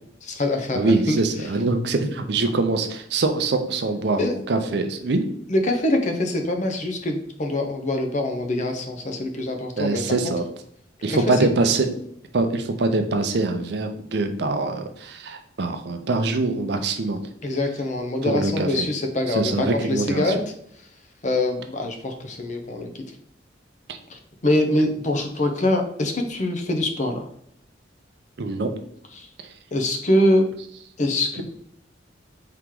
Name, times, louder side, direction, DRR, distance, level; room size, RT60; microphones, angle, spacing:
voice 1, 0.2-1.2 4.2-4.3 4.7-4.8 5.5-10.3 11.1-11.4 17.4-20.5 21.2-23.0 24.1-27.3 29.1-29.3 29.7-30.4 31.0-31.4, left 1 dB, 40° left, 5 dB, 0.6 m, -24 dB
voice 2, 0.7-5.2 9.8-10.4 11.0-11.9 12.3-17.2 18.2-18.9 19.3-20.3 28.4-28.7, right 3 dB, 60° right, 6 dB, 0.5 m, -23 dB
4.6 x 2.9 x 3.7 m, 0.69 s
head